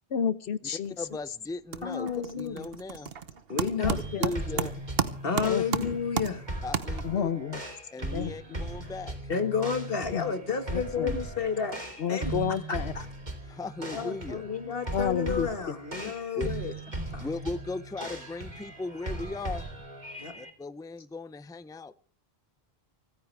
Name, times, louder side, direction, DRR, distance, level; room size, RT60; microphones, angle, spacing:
voice 1, 0.1-0.9 3.8-4.7 5.4-6.0 7.0-7.6 8.1-8.6 10.1-10.3 10.7-11.2 12.0-12.9 14.9-15.7, left 8 dB, 85° left, 1.2 m, -31 dB
sound 1, 0.8-1.2 1.5-7.4, right 6 dB, 70° right, 1.2 m, -33 dB
voice 2, 1.0-3.1 3.8-4.7 6.6-7.3 7.9-9.2 13.5-14.4 16.0-16.7 17.2-19.6 20.3-21.9, left 3 dB, 5° left, 0.4 m, -37 dB
voice 3, 1.8-2.7 3.5-4.0 5.2-6.5 9.3-11.8 12.1-12.3 12.7-13.1 13.8-16.7 17.1-17.3 20.2-20.3, left 6 dB, 65° left, 1.9 m, -31 dB
sound 2, 3.8-20.5, right 2 dB, 45° right, 2.9 m, -38 dB
25.0 x 14.5 x 3.4 m
omnidirectional pair, 1.0 m